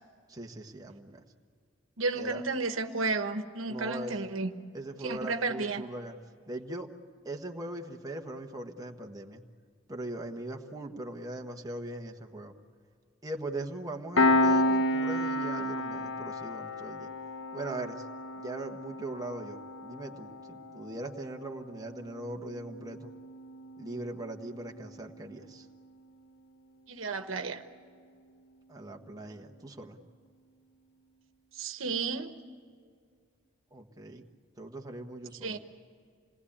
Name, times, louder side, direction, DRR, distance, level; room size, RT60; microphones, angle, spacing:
voice 1, 0.3-1.2 2.1-2.4 3.7-4.2 4.7-6.1 6.5-6.9 7.2-9.4 9.9-12.5 13.2-17.1 17.5-18.0 18.4-23.1 23.8-25.7 28.7-30.0 33.7-34.2 34.6-35.6, right 2 dB, 20° right, 2 dB, 1.4 m, -40 dB
voice 2, 2.0-4.5 5.0-5.8 26.9-27.6 31.5-32.3 35.4-35.6, right 3 dB, 90° right, 7 dB, 1.3 m, -32 dB
Piano, 14.2-25.2, left 1 dB, 80° left, 1.2 m, -32 dB
27.5 x 19.5 x 8.7 m, 2.1 s
head